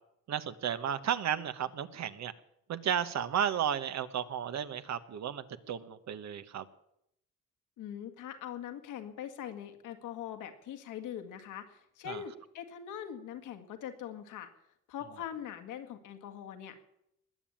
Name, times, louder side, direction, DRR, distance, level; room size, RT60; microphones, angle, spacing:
voice 1, 0.3-2.3 2.7-6.6 12.1-12.2, right 9 dB, 65° right, 12 dB, 1.2 m, -33 dB
voice 2, 7.8-14.5 14.9-16.8, left 9 dB, 90° left, 6 dB, 2.0 m, -42 dB
20.0 x 7.3 x 8.7 m, 0.78 s
cardioid pair, 90°, 30 cm